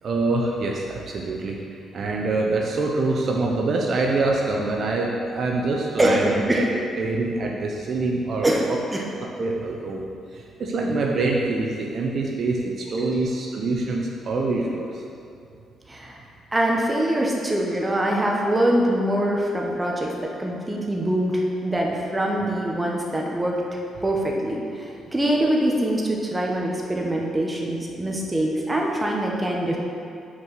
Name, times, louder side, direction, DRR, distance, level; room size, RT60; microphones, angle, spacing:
voice 1, 0.0-1.6 1.9-6.6 7.0-8.8 9.4-15.0, right 3 dB, 55° right, -1 dB, 0.7 m, -25 dB
voice 2, 6.0-6.7 8.4-9.0 13.0-13.2 15.9-16.2 16.5-20.1 20.4-29.8, right 1 dB, 15° right, -1 dB, 1.1 m, -24 dB
6.2 x 4.7 x 5.7 m, 2.5 s
cardioid pair, 90°, 0 cm